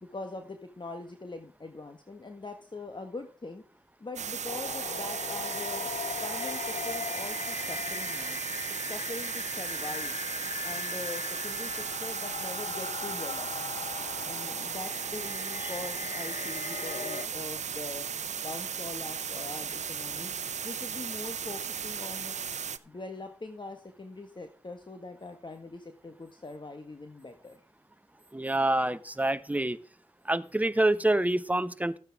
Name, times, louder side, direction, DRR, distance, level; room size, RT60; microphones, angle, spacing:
voice 1, 0.0-3.6 4.0-5.9 6.2-8.4 8.8-10.2 10.6-13.5 14.2-18.1 18.4-20.3 20.6-22.3 22.8-27.6, left 3 dB, 40° left, 6 dB, 1.5 m, -42 dB
sound 1, 4.2-22.8, right 7 dB, 75° right, 0.6 m, -36 dB
sound 2, 4.4-17.3, left 6 dB, 75° left, 0.8 m, -39 dB
voice 2, 28.3-29.8 30.2-32.0, right 1 dB, 10° right, 13 dB, 0.9 m, -27 dB
13.5 x 9.2 x 3.6 m, 0.36 s
cardioid pair, 40°, 12 cm